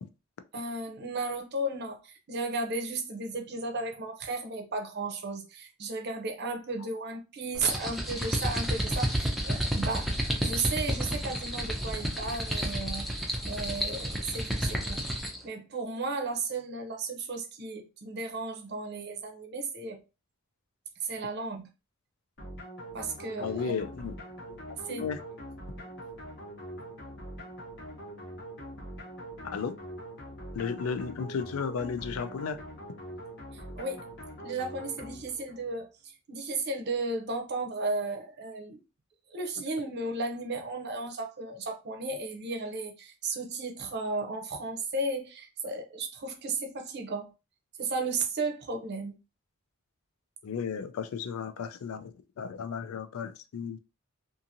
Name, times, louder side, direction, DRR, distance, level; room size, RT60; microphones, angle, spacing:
voice 1, 0.5-10.1 10.4-13.0 13.4-15.0 15.4-20.0 21.0-21.7 22.9-23.7 24.9-25.1 33.8-34.1 34.4-38.8 39.3-47.3 47.8-49.2, right 3 dB, 50° right, 0.6 m, -34 dB
sound 1, 7.6-15.4, equal, ahead, 0.4 m, -31 dB
sound 2, 22.4-35.7, right 1 dB, 55° left, 0.9 m, -43 dB
voice 2, 23.4-24.1 24.9-25.2 29.4-29.7 30.5-32.6 50.4-53.8, left 6 dB, 90° left, 0.4 m, -34 dB
2.8 x 2.5 x 2.5 m
head